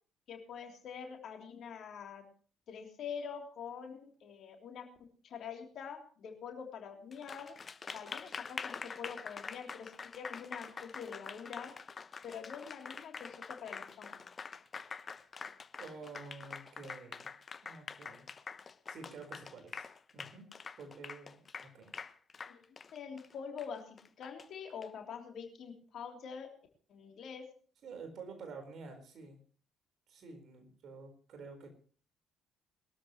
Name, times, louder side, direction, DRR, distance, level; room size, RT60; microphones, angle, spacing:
voice 1, 0.3-2.2 2.7-4.9 5.2-7.5 7.9-11.7 12.2-14.2 22.5-22.6 22.9-26.5 26.9-27.5, left 6 dB, 55° left, 3 dB, 3.2 m, -45 dB
Applause, 7.1-24.9, left 5 dB, 35° left, 1.0 m, -46 dB
voice 2, 15.8-17.3 17.6-18.3 18.9-19.9 20.1-20.5 20.8-21.9 27.8-29.4 30.1-31.7, right 4 dB, 55° right, 6 dB, 4.4 m, -49 dB
21.5 x 13.0 x 3.1 m, 0.42 s
hypercardioid pair, 50°, 0 cm